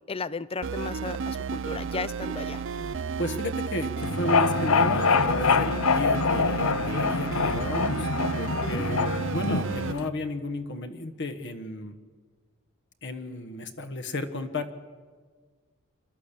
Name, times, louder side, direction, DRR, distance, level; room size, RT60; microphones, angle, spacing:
voice 1, 0.1-2.6 8.6-8.8, left 4 dB, 25° left, 18 dB, 0.5 m, -34 dB
sound 1, 0.6-9.9, right 5 dB, 60° right, 0.6 m, -32 dB
voice 2, 3.2-8.1 8.4-12.0 13.0-14.7, left 1 dB, 55° left, 9 dB, 1.4 m, -33 dB
sound 2, 4.0-10.1, left 5 dB, 75° left, 0.8 m, -25 dB
27.5 x 12.0 x 8.4 m, 1.5 s
head